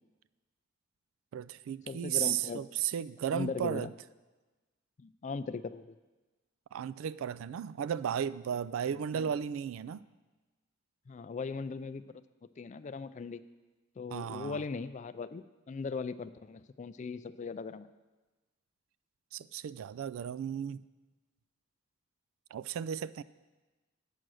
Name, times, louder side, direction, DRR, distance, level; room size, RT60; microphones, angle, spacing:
voice 1, 1.3-3.9 6.7-10.0 14.1-14.6 19.3-20.8 22.5-23.2, right 9 dB, 85° right, 18 dB, 0.3 m, -34 dB
voice 2, 1.9-2.7 3.3-3.9 5.0-5.9 9.2-9.3 11.1-12.2 12.6-13.4 14.0-17.9, left 4 dB, 35° left, 14 dB, 0.3 m, -39 dB
8.8 x 6.6 x 6.2 m, 1.2 s
head